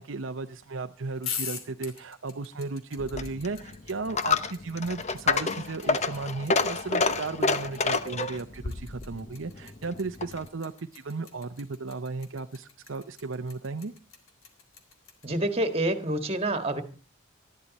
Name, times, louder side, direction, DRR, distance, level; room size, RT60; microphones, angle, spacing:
voice 1, 0.0-13.9, right 3 dB, 70° right, 6 dB, 0.7 m, -35 dB
sound 1, 1.2-15.3, left 6 dB, 75° left, 2.8 m, -41 dB
Coin (dropping), 3.0-10.5, left 4 dB, 35° left, 0.8 m, -29 dB
voice 2, 15.2-16.8, right 1 dB, 30° right, 8 dB, 1.7 m, -27 dB
20.0 x 13.5 x 4.2 m, 0.37 s
head